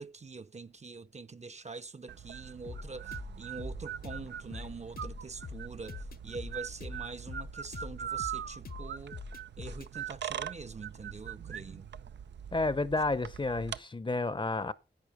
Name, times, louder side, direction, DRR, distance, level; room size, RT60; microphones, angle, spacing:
voice 1, 0.0-9.2 9.6-11.9, right 4 dB, 40° right, 0.7 m, -44 dB
sound 1, 2.1-13.8, right 9 dB, 85° right, 0.5 m, -42 dB
sound 2, 2.7-9.9, left 4 dB, 55° left, 1.0 m, -44 dB
voice 2, 12.5-14.7, left 2 dB, 25° left, 0.7 m, -31 dB
10.5 x 8.8 x 4.8 m
cardioid pair, 55°, 18 cm